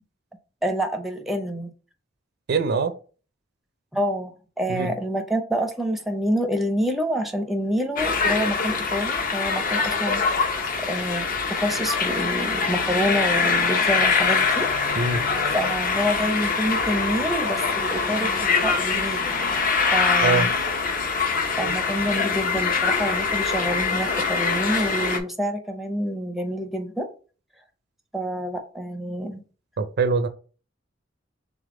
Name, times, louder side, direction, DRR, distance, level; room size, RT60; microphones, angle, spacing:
voice 1, 0.6-1.7 3.9-4.3 4.6-10.6 10.9-14.7 15.5-19.4 19.9-20.5 21.6-27.1 28.1-29.4, equal, ahead, 0.6 m, -27 dB
voice 2, 2.5-2.9 4.7-4.9 15.0-15.2 20.2-20.5 29.8-30.3, right 4 dB, 55° right, 0.5 m, -23 dB
sound 1, 8.0-25.2, left 5 dB, 45° left, 0.7 m, -23 dB
3.5 x 3.5 x 3.6 m
head